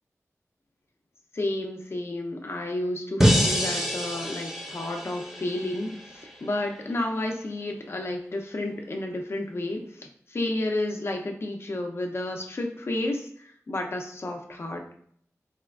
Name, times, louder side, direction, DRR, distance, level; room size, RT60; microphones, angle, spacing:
voice 1, 1.3-14.9, left 1 dB, 50° left, 3 dB, 0.5 m, -31 dB
sound 1, 3.2-6.3, equal, 5° right, 0.6 m, -26 dB
4.1 x 2.3 x 2.3 m, 0.64 s
wide cardioid pair, 80°, 6 cm